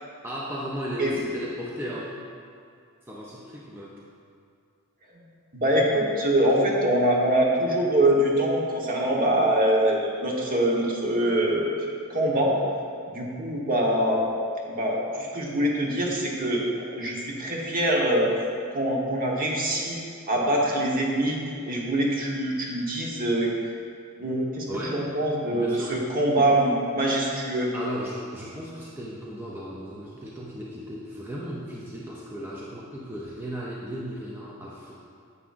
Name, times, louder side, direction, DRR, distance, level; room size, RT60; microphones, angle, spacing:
voice 1, 0.2-2.2 3.1-4.0 24.7-25.1 25.5-26.0 27.7-35.0, equal, 10° right, -5 dB, 0.6 m, -35 dB
voice 2, 5.5-11.7 12.1-12.5 13.1-14.2 14.7-16.7 16.9-18.3 18.7-20.0 20.3-21.4 21.7-23.5 24.2-24.7 24.9-27.7, right 1 dB, 40° right, -3 dB, 1.2 m, -24 dB
9.5 x 7.2 x 2.6 m, 2.3 s
head